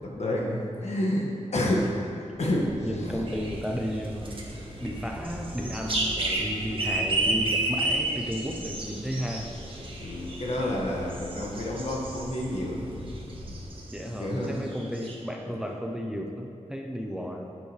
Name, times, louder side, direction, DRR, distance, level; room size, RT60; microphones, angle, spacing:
voice 1, 0.0-1.9 2.4-3.2 10.0-12.9 14.0-14.5 15.5-15.6 17.0-17.1, left 1 dB, 60° left, -3 dB, 1.7 m, -29 dB
sound 1, 2.3-13.7, left 1 dB, 85° left, 1.7 m, -43 dB
voice 2, 2.8-4.4 4.8-9.5 13.9-17.5, equal, 5° right, 2 dB, 0.6 m, -33 dB
sound 2, 3.3-12.6 12.9-14.1 14.4-14.5 14.7-15.1, right 2 dB, 45° right, 1.5 m, -32 dB
11.0 x 8.1 x 3.3 m, 2.8 s
wide cardioid pair, 95°, 13 cm